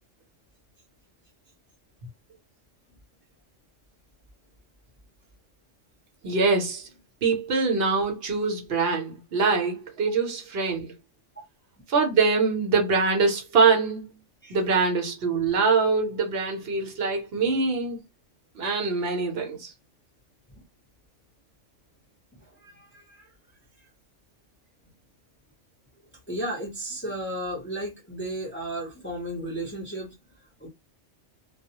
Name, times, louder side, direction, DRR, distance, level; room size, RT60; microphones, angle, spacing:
voice 1, 6.2-6.9 7.2-10.9 11.9-14.1 14.5-18.0 18.5-19.7, right 4 dB, 55° right, 1.0 m, -24 dB
voice 2, 22.4-23.3 26.3-30.1 30.6-30.7, right 1 dB, 10° left, 0.6 m, -34 dB
2.3 x 2.1 x 2.8 m
omnidirectional pair, 1.3 m